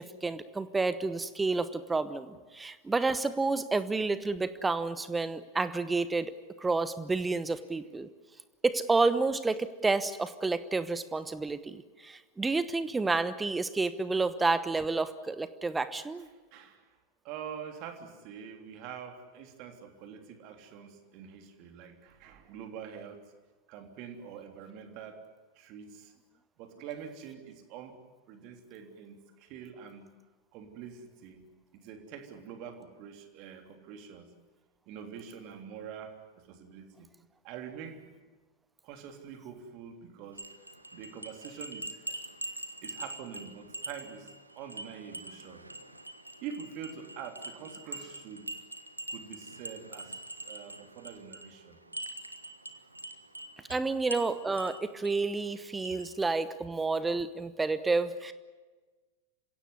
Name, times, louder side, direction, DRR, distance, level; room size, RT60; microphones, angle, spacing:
voice 1, 0.0-8.1 8.6-16.3 53.7-58.3, right 3 dB, 10° right, 14 dB, 1.0 m, -30 dB
voice 2, 16.5-16.9 17.2-23.2 23.7-25.2 25.5-26.1 26.6-28.0 28.3-30.0 30.5-31.4 31.7-34.3 34.9-36.2 36.4-37.1 37.4-38.2 38.8-40.4 40.9-42.2 42.8-45.9 46.4-48.5 49.1-51.8, right 7 dB, 40° right, 5 dB, 3.3 m, -45 dB
sound 1, 40.3-56.4, right 1 dB, 85° right, 1.4 m, -44 dB
27.0 x 16.5 x 9.6 m, 1.3 s
figure-of-eight pair, 90°, 0 cm